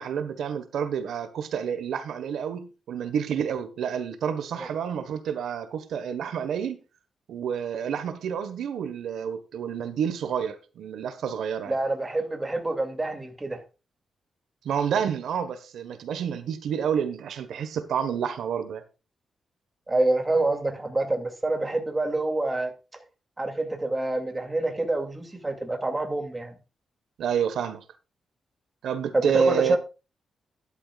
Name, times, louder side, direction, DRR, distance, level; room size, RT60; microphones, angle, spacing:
voice 1, 0.0-6.8 7.3-11.8 14.6-18.8 27.2-27.8 28.8-29.8, right 7 dB, 80° right, 1.4 m, -29 dB
voice 2, 11.7-13.6 19.9-22.7 23.4-26.5 29.1-29.8, right 2 dB, 15° right, 2.6 m, -27 dB
13.0 x 11.5 x 2.5 m
wide cardioid pair, 150°, 0 cm